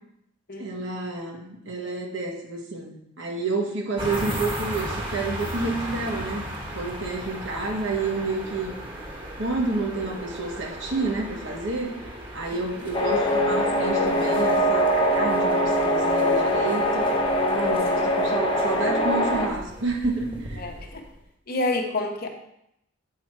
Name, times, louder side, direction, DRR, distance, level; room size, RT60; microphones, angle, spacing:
voice 1, 0.6-6.4 6.7-8.7 9.4-11.9 12.3-17.1 17.5-20.7, right 3 dB, 65° right, 0 dB, 1.6 m, -29 dB
sound 1, 4.0-21.2, right 1 dB, 25° right, 1.3 m, -37 dB
sound 2, 12.9-19.5, equal, 25° left, 0.8 m, -22 dB
voice 2, 20.6-21.0 21.5-22.3, left 2 dB, 50° left, 4 dB, 0.9 m, -28 dB
8.3 x 4.4 x 4.7 m, 0.78 s
head